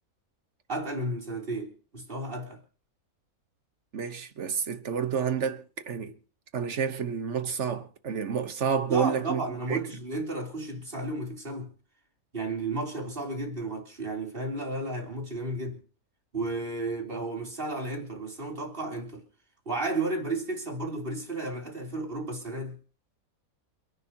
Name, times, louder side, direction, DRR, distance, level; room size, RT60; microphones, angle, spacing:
voice 1, 0.7-2.6 8.9-11.7 12.3-15.8 16.3-19.2 19.7-22.8, right 2 dB, 35° right, 3.7 m, -33 dB
voice 2, 3.9-6.1 6.5-9.4 9.7-9.8, right 7 dB, 55° right, 1.4 m, -29 dB
28.5 x 11.0 x 3.0 m
omnidirectional pair, 1.6 m